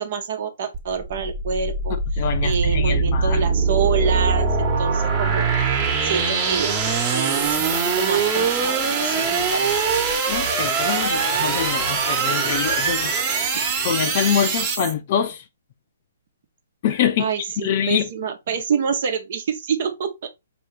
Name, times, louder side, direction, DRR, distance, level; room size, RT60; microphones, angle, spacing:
voice 1, 0.0-2.0 2.4-6.8 7.0-10.0 17.2-20.3, right 6 dB, 50° right, 1.0 m, -27 dB
sound 1, 0.7-14.9, right 5 dB, 25° right, 1.2 m, -22 dB
voice 2, 2.2-3.4 10.3-13.1 13.8-15.4 16.8-17.3 17.6-18.1, left 9 dB, 40° left, 0.7 m, -24 dB
4.6 x 3.0 x 3.2 m
figure-of-eight pair, 125°, 0 cm